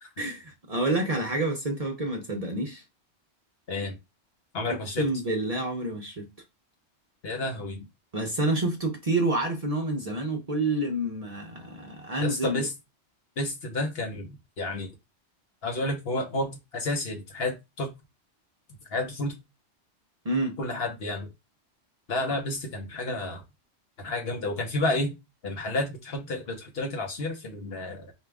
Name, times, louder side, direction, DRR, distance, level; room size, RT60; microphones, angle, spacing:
voice 1, 0.2-2.8 4.7-6.3 8.1-12.7 20.2-20.6, right 2 dB, 40° right, 0.6 m, -28 dB
voice 2, 4.5-5.1 7.2-7.9 12.2-12.7 13.4-14.9 15.6-17.9 18.9-19.3 20.6-21.3 22.1-23.4 24.0-25.1 25.4-28.1, left 2 dB, 60° left, 1.2 m, -31 dB
4.5 x 2.4 x 3.3 m
omnidirectional pair, 1.2 m